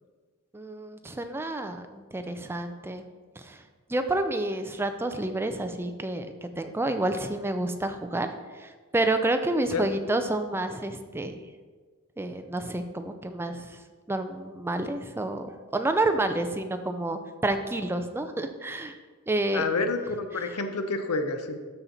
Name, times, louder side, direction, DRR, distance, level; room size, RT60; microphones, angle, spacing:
voice 1, 0.5-3.0 3.4-3.6 3.9-8.3 8.5-11.4 12.2-13.8 14.1-19.0 19.3-19.6, right 2 dB, 10° right, 8 dB, 0.4 m, -29 dB
voice 2, 19.5-21.6, left 3 dB, 85° left, 7 dB, 0.8 m, -29 dB
12.5 x 4.4 x 4.0 m, 1.4 s
head